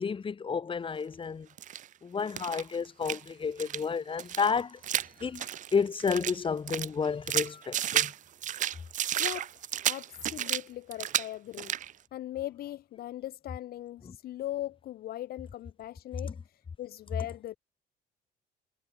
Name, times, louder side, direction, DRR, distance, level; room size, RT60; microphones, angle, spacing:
voice 1, 0.0-1.5 2.0-4.8 5.2-8.1 14.0-14.2, left 5 dB, 30° left, 3.1 m, -31 dB
sound 1, 1.6-1.9 2.3-3.3 3.6-3.8 4.2-6.4 6.7-8.2 8.4-10.6 10.9-11.3 11.5-11.9, right 11 dB, 50° right, 0.6 m, -32 dB
voice 2, 9.2-11.7 12.1-16.4 16.8-17.6, left 13 dB, 65° left, 1.3 m, -39 dB
cardioid pair, 110°, 17 cm